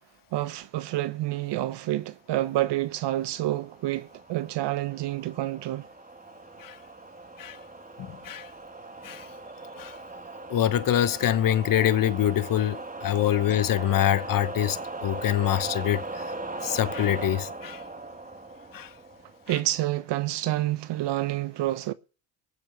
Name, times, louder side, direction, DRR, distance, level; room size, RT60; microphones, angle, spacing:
voice 1, 0.3-5.8 19.5-21.9, right 15 dB, 55° right, 1.1 m, -28 dB
sound 1, 3.0-19.5, right 2 dB, 15° right, 2.0 m, -39 dB
voice 2, 8.0-8.5 9.0-9.3 9.8-10.0 10.5-16.2 16.6-17.8 18.7-18.9 19.5-19.6, left 11 dB, 45° left, 1.1 m, -25 dB
20.5 x 7.6 x 5.9 m
hypercardioid pair, 65°, 49 cm